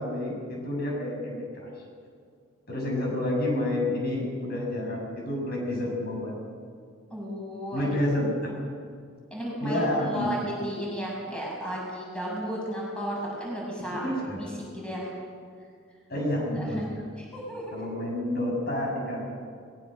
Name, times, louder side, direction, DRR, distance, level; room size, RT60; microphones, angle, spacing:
voice 1, 0.0-1.7 2.7-6.4 7.7-8.5 9.6-10.4 13.9-14.5 16.1-16.8 17.7-19.3, left 1 dB, 50° left, -1 dB, 7.5 m, -29 dB
voice 2, 7.1-7.9 9.3-14.0 14.6-15.1 16.5-16.9 17.2-17.9, equal, 5° left, -4 dB, 6.7 m, -34 dB
23.0 x 21.0 x 6.6 m, 2.2 s
head